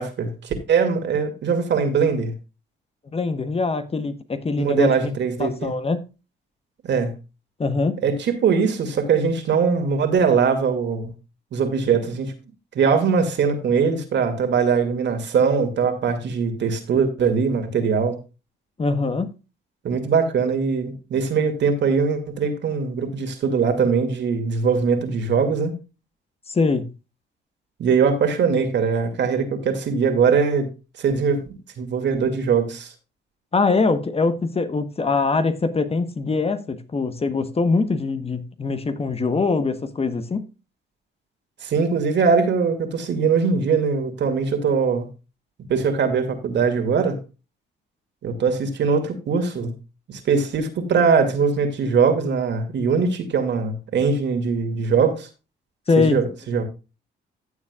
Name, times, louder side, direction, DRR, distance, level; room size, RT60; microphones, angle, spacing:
voice 1, 0.0-2.3 4.6-5.7 6.8-7.1 8.0-11.1 11.5-12.3 12.7-18.2 19.8-25.7 27.8-30.7 31.0-31.4 31.8-32.9 41.6-45.1 45.7-47.2 48.2-49.7 50.1-55.3 56.1-56.6, right 5 dB, 65° right, 2.4 m, -21 dB
voice 2, 3.1-4.9 5.4-6.0 7.6-8.0 18.8-19.3 26.5-26.9 33.5-40.4 55.9-56.2, left 4 dB, 30° left, 1.2 m, -22 dB
15.0 x 7.2 x 2.4 m
cardioid pair, 90°, 20 cm